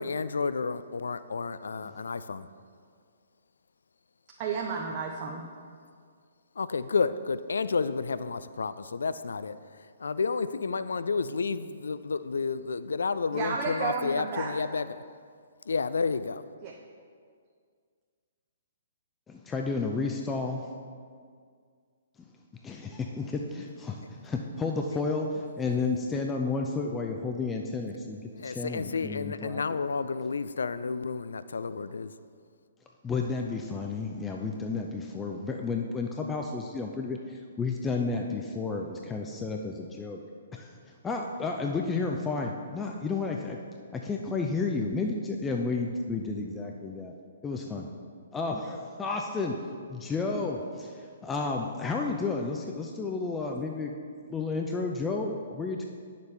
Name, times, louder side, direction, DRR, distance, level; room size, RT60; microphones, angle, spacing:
voice 1, 0.0-2.5 6.6-15.0 15.7-16.4 28.4-32.1, left 4 dB, 70° left, 14 dB, 0.3 m, -31 dB
voice 2, 4.4-5.4 13.3-14.5 16.6-16.7 50.3-50.4, right 5 dB, 35° right, -1 dB, 0.8 m, -32 dB
voice 3, 19.3-20.7 22.6-28.2 28.4-29.6 33.0-40.2 40.5-40.7 41.0-43.6 43.9-47.1 47.4-47.9 48.3-49.6 49.9-53.9 54.3-55.8, left 4 dB, 15° left, 1 dB, 0.5 m, -32 dB
9.4 x 6.6 x 3.3 m, 2.1 s
figure-of-eight pair, 125°, 0 cm